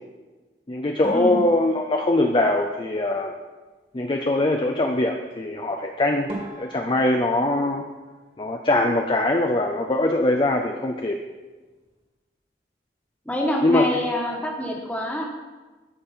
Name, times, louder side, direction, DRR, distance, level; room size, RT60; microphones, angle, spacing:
voice 1, 0.7-3.3 3.9-6.3 6.6-7.8 8.4-11.2 13.6-13.9, left 2 dB, 25° left, 2 dB, 0.5 m, -22 dB
sound 1, 1.0-3.5 5.7-5.8 6.3-9.0 9.3-10.1 10.4-10.6 10.9-11.0 11.6-11.9, right 1 dB, 30° right, 2.1 m, -42 dB
voice 2, 13.2-15.4, equal, 10° left, -1 dB, 1.4 m, -26 dB
14.0 x 5.3 x 4.3 m, 1.3 s
head